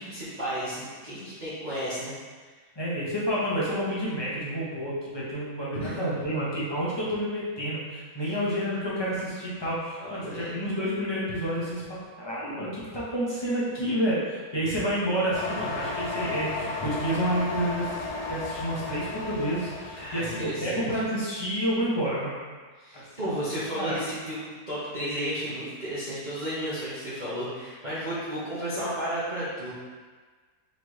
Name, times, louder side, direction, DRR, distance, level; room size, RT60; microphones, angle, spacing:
voice 1, 0.0-2.1 5.7-6.0 10.0-10.5 20.0-21.0 22.8-29.7, equal, 35° right, -12 dB, 0.9 m, -33 dB
voice 2, 2.8-22.4 22.9-23.3 23.8-24.0, equal, 20° left, -8 dB, 0.7 m, -29 dB
sound 1, 15.3-20.6, left 3 dB, 80° left, 1.2 m, -34 dB
4.2 x 3.3 x 3.1 m, 1.4 s
omnidirectional pair, 1.7 m